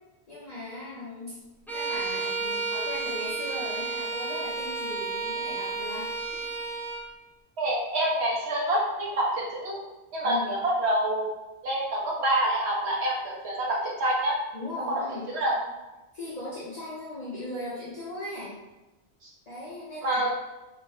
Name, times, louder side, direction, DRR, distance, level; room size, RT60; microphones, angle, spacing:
voice 1, 0.3-1.4 1.7-6.1 10.2-10.5 14.5-15.3 16.1-18.6 19.5-20.3, left 1 dB, 40° left, -9 dB, 1.0 m, -38 dB
Bowed string instrument, 1.7-7.1, right 4 dB, 5° left, 0.4 m, -32 dB
voice 2, 7.6-9.8 10.1-11.4 11.6-14.4 15.0-15.5 19.2-19.3 20.0-20.3, right 1 dB, 80° right, -3 dB, 1.2 m, -27 dB
3.3 x 2.9 x 4.2 m, 1.0 s
omnidirectional pair, 1.1 m